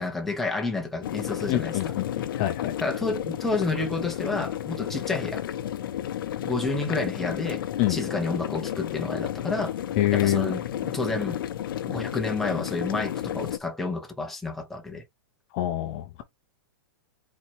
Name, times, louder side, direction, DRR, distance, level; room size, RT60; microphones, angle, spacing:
voice 1, 0.0-1.9 2.8-5.4 6.4-7.6 7.9-9.8 10.1-11.4 11.8-15.0, left 3 dB, ahead, 0.8 m, -30 dB
sound 1, 1.0-13.6, left 11 dB, 70° left, 0.7 m, -32 dB
voice 2, 1.5-2.7 7.8-8.0 10.0-10.5 15.5-16.2, left 14 dB, 30° left, 0.6 m, -26 dB
4.2 x 2.8 x 4.5 m
supercardioid pair, 170°, 12 cm